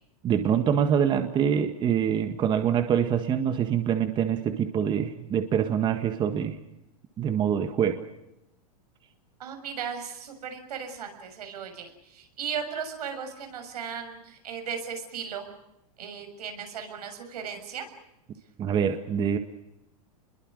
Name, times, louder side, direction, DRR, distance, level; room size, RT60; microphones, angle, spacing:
voice 1, 0.2-6.6 7.2-8.0 18.6-19.4, right 8 dB, 25° right, 8 dB, 1.8 m, -25 dB
voice 2, 9.4-15.5 16.0-17.9, right 7 dB, 85° right, 6 dB, 6.9 m, -36 dB
29.0 x 22.5 x 6.5 m, 0.87 s
supercardioid pair, 145°, 19 cm